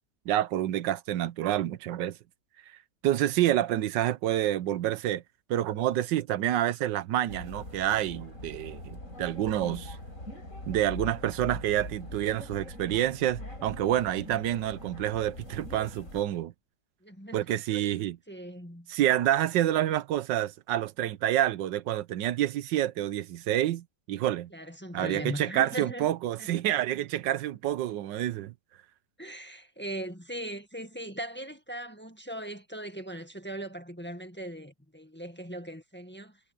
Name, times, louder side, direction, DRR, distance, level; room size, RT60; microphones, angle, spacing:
voice 1, 0.3-2.2 3.0-5.2 5.5-10.0 10.7-16.5 17.3-18.2 18.9-24.5 24.9-28.5, right 12 dB, 90° right, 1.4 m, -28 dB
sound 1, 7.3-16.2, left 1 dB, 45° left, 7.9 m, -42 dB
voice 2, 17.0-18.0 18.3-18.9 24.5-26.1 26.4-26.5 26.9-27.0 29.2-36.4, right 1 dB, 5° left, 1.5 m, -39 dB
omnidirectional pair, 1.9 m